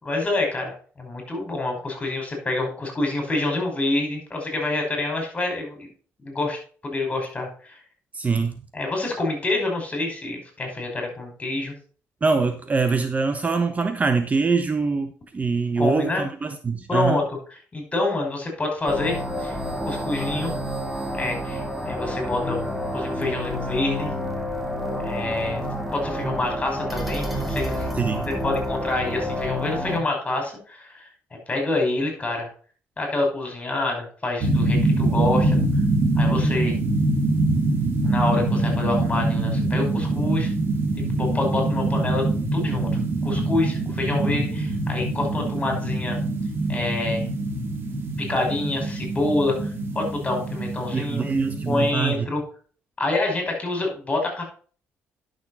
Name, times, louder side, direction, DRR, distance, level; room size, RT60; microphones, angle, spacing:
voice 1, 0.0-5.9 6.2-7.8 8.7-11.8 15.8-16.3 16.9-17.4 17.7-20.5 21.1-22.6 22.9-24.1 25.0-25.6 25.9-27.9 28.3-31.0 31.5-32.5 33.0-35.6 36.2-36.7 38.0-40.5 41.2-42.2 42.5-42.9 43.2-46.2 46.7-47.3 48.2-51.3 51.7-52.4 53.0-54.4, left 2 dB, 25° left, 2 dB, 5.4 m, -27 dB
voice 2, 8.1-8.6 12.2-17.2 27.9-28.3 50.9-52.3, right 4 dB, 30° right, 8 dB, 1.0 m, -24 dB
sound 1, 18.9-30.0, equal, ahead, 2.1 m, -29 dB
sound 2, 34.4-51.9, right 2 dB, 45° right, 2.5 m, -24 dB
10.5 x 6.5 x 4.2 m, 0.42 s
cardioid pair, 85°, 5 cm